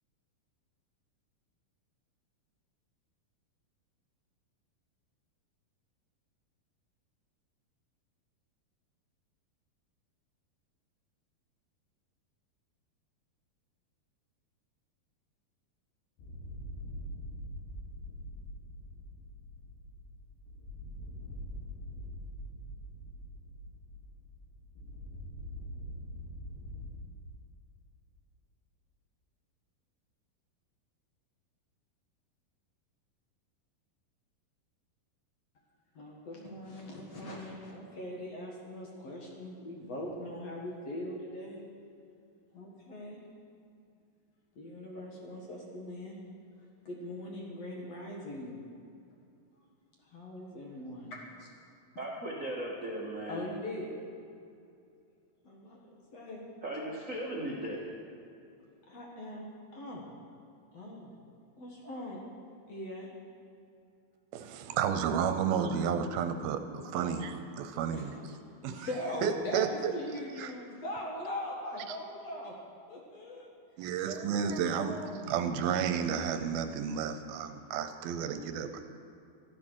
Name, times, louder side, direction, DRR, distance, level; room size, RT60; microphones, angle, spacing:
sound 1, 16.2-26.9, equal, 90° left, 4.6 m, -44 dB
voice 1, 36.0-41.6 42.5-43.2 44.6-46.2 46.8-48.5 50.0-51.5 53.3-54.0 55.4-56.4 58.8-60.0 60.7-61.1 61.6-62.2 62.7-63.2 66.9-67.2 67.9-68.4 68.7-72.5 72.9-73.5 74.4-75.8, left 1 dB, 50° left, -2 dB, 2.3 m, -41 dB
voice 2, 52.0-53.4 56.6-57.9, right 1 dB, 40° right, -5 dB, 1.1 m, -37 dB
voice 3, 64.3-68.1 68.6-68.9 69.2-69.9 70.4-70.5 73.8-75.0 75.3-78.8, right 7 dB, 80° right, 8 dB, 2.5 m, -32 dB
13.5 x 13.0 x 6.4 m, 2.5 s
omnidirectional pair, 4.5 m